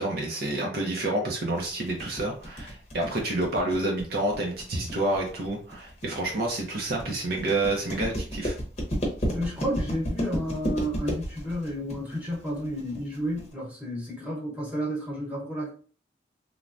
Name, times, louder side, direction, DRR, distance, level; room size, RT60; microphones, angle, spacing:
voice 1, 0.0-8.6, right 2 dB, 60° right, 0.6 m, -29 dB
sound 1, 1.6-13.5, equal, 40° left, 0.8 m, -33 dB
voice 2, 9.3-15.7, equal, 10° right, 1.0 m, -31 dB
3.1 x 2.2 x 2.5 m
head